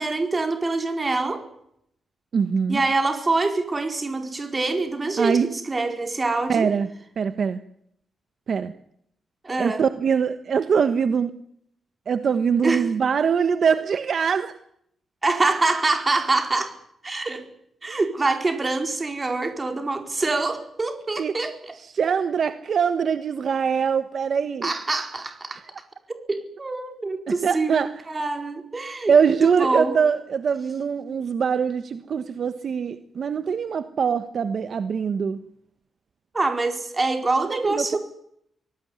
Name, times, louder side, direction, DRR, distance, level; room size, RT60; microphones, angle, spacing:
voice 1, 0.0-1.4 2.7-6.7 9.4-9.8 12.6-12.9 15.2-16.7 17.0-17.5 17.8-21.7 24.6-25.6 26.3-29.1 29.4-29.9 36.3-38.0, right 3 dB, 25° right, 6 dB, 4.6 m, -25 dB
voice 2, 2.3-2.8 5.2-5.5 6.5-6.9 7.2-7.6 8.5-8.7 9.6-11.3 12.1-14.5 17.9-18.0 21.2-21.3 21.8-24.7 27.3-27.9 29.1-35.4 37.4-38.0, right 6 dB, 55° right, 10 dB, 1.3 m, -23 dB
24.5 x 18.5 x 9.6 m, 0.72 s
wide cardioid pair, 135°, 0 cm